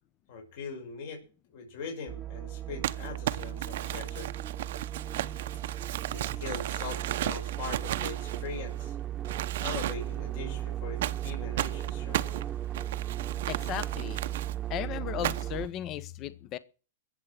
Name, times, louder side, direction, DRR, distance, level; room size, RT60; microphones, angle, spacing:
voice 1, 0.3-1.2 1.5-4.3 6.1-8.9 9.6-12.4, left 5 dB, 60° left, 6.1 m, -41 dB
sound 1, 2.1-15.7, right 12 dB, 25° right, 1.0 m, -36 dB
Crumpling crinkling, 2.8-8.9 9.2-10.2 11.0-14.5 15.2-15.7, right 13 dB, 65° right, 0.8 m, -35 dB
voice 2, 13.5-14.2 14.7-16.6, left 11 dB, 35° left, 0.9 m, -36 dB
21.0 x 7.8 x 6.0 m
hypercardioid pair, 120°, 0 cm